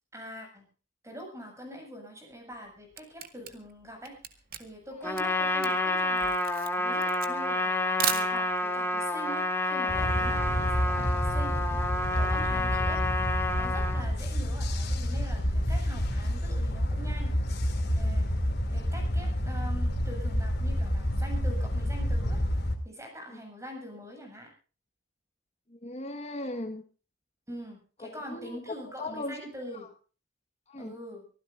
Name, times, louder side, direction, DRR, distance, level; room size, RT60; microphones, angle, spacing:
voice 1, 0.1-0.7 1.0-13.0 13.5-17.3 17.6-18.3 18.7-22.4 22.8-24.5 27.5-29.9 30.8-31.3, equal, 15° right, 3 dB, 7.8 m, -44 dB
Camera, 2.5-8.8, right 9 dB, 50° right, 1.9 m, -36 dB
Trumpet, 5.0-14.0, left 2 dB, 10° left, 2.6 m, -29 dB
sound 1, 9.9-22.7, equal, 55° left, 2.9 m, -29 dB
voice 2, 25.7-26.8 28.3-28.6 29.0-29.4 30.7-30.9, left 2 dB, 35° left, 5 dB, 1.6 m, -37 dB
25.0 x 15.0 x 2.6 m, 0.36 s
head